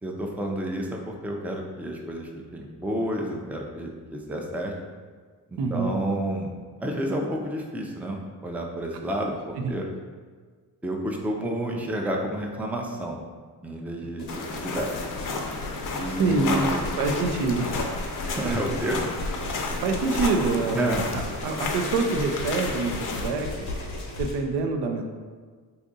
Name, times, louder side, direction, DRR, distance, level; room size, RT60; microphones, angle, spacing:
voice 1, 0.0-4.7 5.5-6.5 6.8-9.9 10.8-13.2 13.6-14.9 16.0-16.8 18.2-19.0 20.7-21.0, right 1 dB, 5° right, 1 dB, 0.4 m, -30 dB
voice 2, 5.6-5.9 9.6-9.7 16.2-16.6 17.0-17.8 18.4-18.6 19.8-23.7 24.2-25.0, right 4 dB, 80° right, 4 dB, 0.5 m, -26 dB
sound 1, 14.2-24.3, left 1 dB, 90° left, 0.8 m, -35 dB
sound 2, 14.3-23.3, left 4 dB, 50° left, 0.5 m, -32 dB
2.7 x 2.4 x 3.9 m, 1.5 s
supercardioid pair, 65°, 41 cm